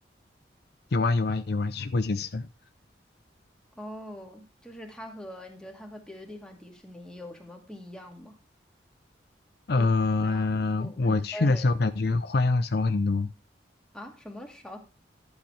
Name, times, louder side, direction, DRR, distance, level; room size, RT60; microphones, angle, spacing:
voice 1, 0.9-2.5 9.7-13.3, left 3 dB, 60° left, 0.6 m, -25 dB
voice 2, 3.8-8.4 9.8-9.9 10.2-10.5 10.8-11.7 13.9-14.8, left 1 dB, 5° left, 2.4 m, -43 dB
12.0 x 8.1 x 3.3 m
head